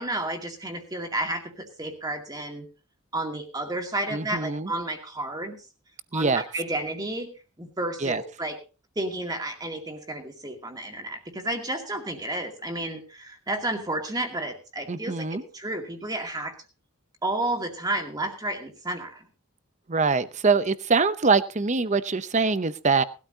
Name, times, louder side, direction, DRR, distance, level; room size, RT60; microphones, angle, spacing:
voice 1, 0.0-2.7 3.1-5.6 6.1-7.3 7.6-8.6 9.0-16.5 17.2-19.3, right 1 dB, 20° right, 3 dB, 2.3 m, -31 dB
voice 2, 4.1-4.7 6.1-6.4 8.0-8.2 14.9-15.4 19.9-23.0, right 4 dB, 35° right, 13 dB, 0.7 m, -23 dB
19.5 x 12.5 x 2.8 m, 0.33 s
head